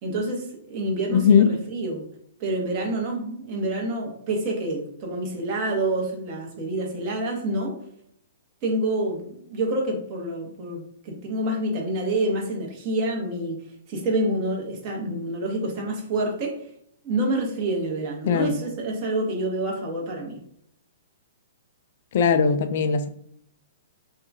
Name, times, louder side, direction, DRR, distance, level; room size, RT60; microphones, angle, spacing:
voice 1, 0.0-2.0 2.4-7.8 8.6-13.6 13.9-16.5 17.0-20.4, right 1 dB, 40° right, 1.0 m, -27 dB
voice 2, 1.1-1.5 18.3-18.5 22.1-23.1, left 6 dB, 55° left, 0.3 m, -19 dB
2.8 x 2.3 x 2.6 m
hypercardioid pair, 125°, 0 cm